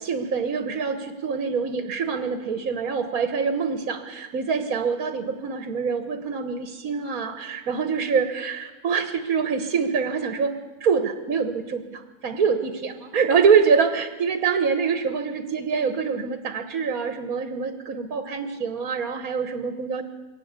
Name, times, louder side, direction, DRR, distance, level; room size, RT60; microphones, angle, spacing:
voice 1, 0.0-10.5 10.8-20.0, right 5 dB, 80° right, 8 dB, 1.8 m, -25 dB
23.0 x 18.0 x 8.2 m, 1.2 s
omnidirectional pair, 1.5 m